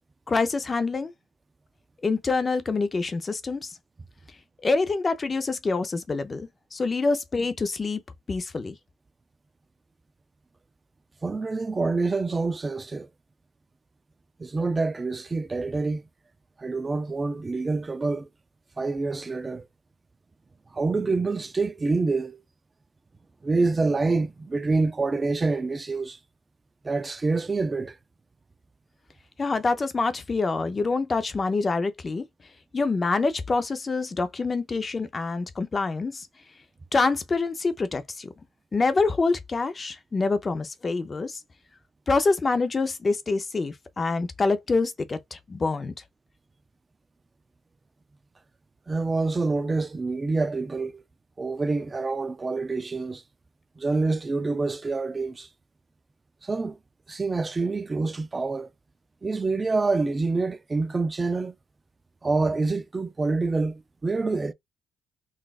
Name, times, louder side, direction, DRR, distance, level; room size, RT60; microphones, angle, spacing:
voice 1, 0.3-1.1 2.0-3.7 4.6-8.0 8.3-8.8 29.4-32.2 32.7-36.3 36.9-38.3 38.7-41.4 42.1-45.9, left 3 dB, 30° left, 0.6 m, -26 dB
voice 2, 11.2-13.1 14.4-16.1 16.6-18.3 18.8-19.7 20.7-22.4 23.4-26.2 26.8-28.0 48.9-51.0 51.4-53.2 53.8-55.5 56.4-56.8 57.1-58.7 59.2-61.5 62.2-64.5, right 3 dB, 25° right, 0.4 m, -26 dB
4.0 x 2.4 x 2.3 m
cardioid pair, 90°, 0 cm